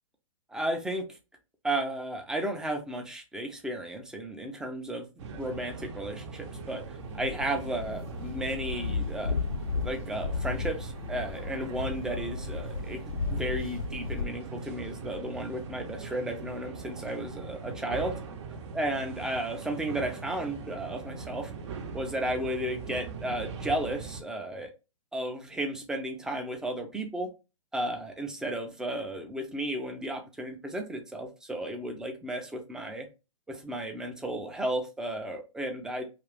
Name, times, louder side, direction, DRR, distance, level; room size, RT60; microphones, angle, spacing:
voice 1, 0.5-1.0 1.6-9.4 9.8-13.0 13.3-18.1 18.7-21.5 21.9-24.7 25.1-27.3 27.7-33.1 33.5-36.0, right 1 dB, 5° right, 4 dB, 0.4 m, -34 dB
sound 1, 5.2-24.2, right 4 dB, 55° right, 0.7 m, -41 dB
sound 2, 6.8-14.3, left 4 dB, 85° left, 0.6 m, -34 dB
2.5 x 2.4 x 3.3 m, 0.29 s
figure-of-eight pair, 120°, 18 cm